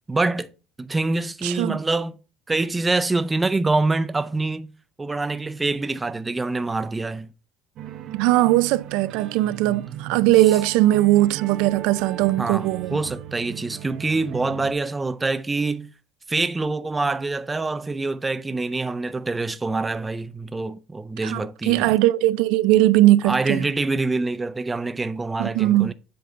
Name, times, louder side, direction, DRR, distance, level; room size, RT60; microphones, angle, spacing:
voice 1, 0.1-0.5 0.8-2.1 2.5-4.7 5.0-7.3 12.4-15.9 16.3-21.9 23.2-25.9, right 3 dB, 10° right, 0.4 m, -25 dB
voice 2, 1.4-1.8 8.1-13.0 21.2-23.6 25.4-25.9, right 16 dB, 80° right, 0.3 m, -19 dB
sound 1, 7.8-14.7, right 12 dB, 50° right, 0.7 m, -37 dB
7.7 x 3.8 x 5.5 m
cardioid pair, 145°, 0 cm